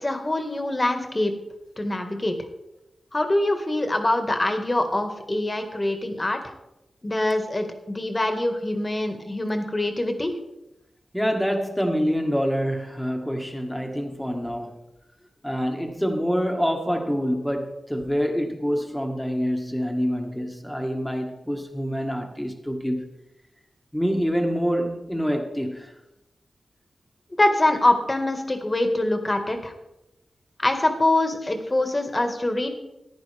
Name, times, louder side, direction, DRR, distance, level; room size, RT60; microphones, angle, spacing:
voice 1, 0.0-1.3 1.8-2.3 3.1-6.4 7.0-10.3 27.4-29.7 30.6-32.7, left 1 dB, 30° left, 2.0 m, -24 dB
voice 2, 11.1-14.8 15.4-23.0 23.9-25.9, equal, 5° left, 1.9 m, -26 dB
14.5 x 10.0 x 3.6 m
cardioid pair, 50°, 0 cm